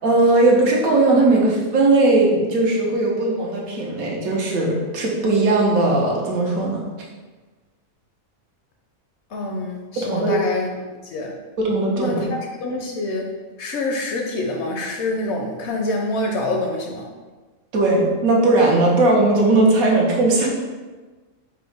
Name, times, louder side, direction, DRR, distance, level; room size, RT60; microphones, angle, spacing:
voice 1, 0.0-6.8 10.0-10.3 11.6-12.3 17.7-20.5, right 2 dB, 85° right, -2 dB, 1.4 m, -18 dB
voice 2, 9.3-10.7 11.0-11.3 12.0-13.3 13.6-17.1, left 2 dB, 65° left, 1 dB, 0.7 m, -26 dB
4.7 x 2.1 x 4.7 m, 1.3 s
omnidirectional pair, 1.5 m